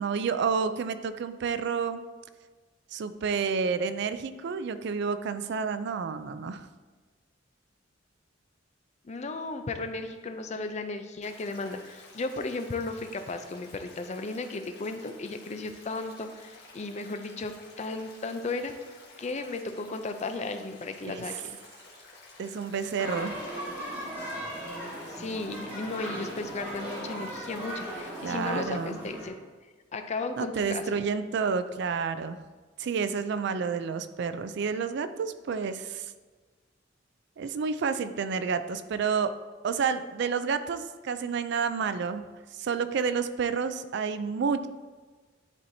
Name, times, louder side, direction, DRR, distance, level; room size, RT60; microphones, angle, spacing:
voice 1, 0.0-2.0 2.9-6.7 21.1-21.4 22.4-23.5 28.2-29.0 30.4-32.4 32.8-36.1 37.4-39.3 39.6-42.3 42.6-44.7, right 5 dB, 65° right, 11 dB, 0.4 m, -30 dB
voice 2, 9.0-18.7 19.2-21.3 25.1-29.4 29.9-31.0, left 3 dB, 35° left, 8 dB, 0.5 m, -35 dB
Stream, 11.2-28.7, left 3 dB, 60° left, 1.2 m, -52 dB
sound 1, 23.0-29.3, equal, 10° right, 2.0 m, -38 dB
10.5 x 4.2 x 2.7 m, 1.4 s
head